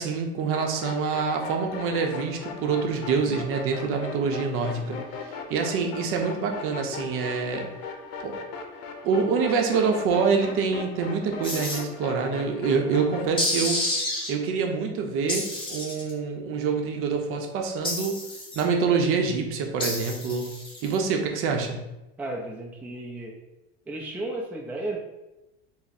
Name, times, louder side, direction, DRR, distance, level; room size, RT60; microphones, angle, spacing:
voice 1, 0.0-7.7 8.2-8.4 9.0-18.2 18.5-20.5 20.8-21.8, right 5 dB, 50° right, 3 dB, 0.6 m, -26 dB
sound 1, 0.5-13.3, left 5 dB, 80° left, 0.6 m, -38 dB
sound 2, 11.4-11.8 13.4-14.3 15.3-16.1 17.8-18.6 19.8-21.0, left 1 dB, 15° left, 0.9 m, -29 dB
voice 2, 22.2-23.3 23.9-25.0, right 2 dB, 5° right, -2 dB, 0.3 m, -33 dB
3.4 x 2.0 x 4.0 m, 0.97 s
supercardioid pair, 125°, 29 cm